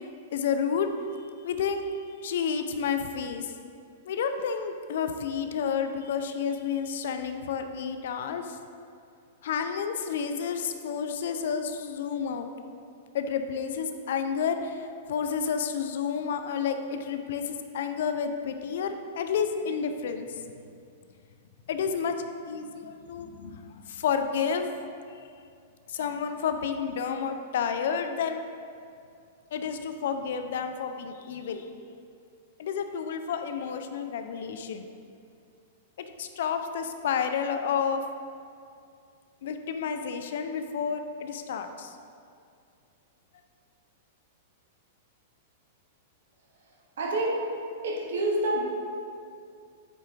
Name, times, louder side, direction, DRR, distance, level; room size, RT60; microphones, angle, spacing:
voice 1, 0.3-3.5 4.0-8.6 9.4-12.5 13.1-20.4 21.7-22.2 22.5-24.7 25.9-28.4 29.5-31.7 32.6-34.9 36.2-38.0 39.4-42.0, left 6 dB, 55° left, 7 dB, 0.5 m, -30 dB
voice 2, 47.0-47.4 47.8-48.6, right 1 dB, 60° right, -2 dB, 1.1 m, -27 dB
8.1 x 4.4 x 3.4 m, 2.4 s
figure-of-eight pair, 100°, 0 cm